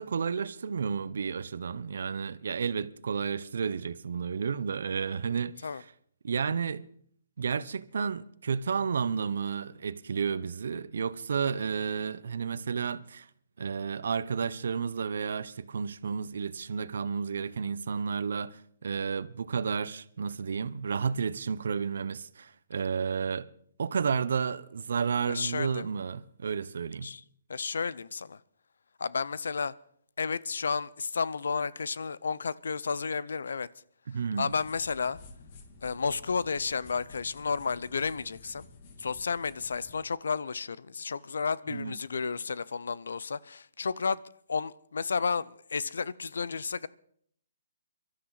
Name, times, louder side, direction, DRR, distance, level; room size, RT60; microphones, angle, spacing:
voice 1, 0.0-5.8 6.2-6.8 7.4-13.3 13.6-23.5 23.8-27.1 34.1-34.5 41.7-41.9, right 6 dB, 70° right, 0.8 m, -32 dB
voice 2, 25.3-25.9 27.0-27.2 27.5-28.4 29.0-29.7 30.2-33.7 34.4-35.2 35.8-38.7 39.0-44.2 44.5-46.9, left 5 dB, 80° left, 0.6 m, -32 dB
sound 1, 34.5-40.0, left 3 dB, 45° left, 2.4 m, -51 dB
23.5 x 13.0 x 4.1 m
hypercardioid pair, 145°, 0 cm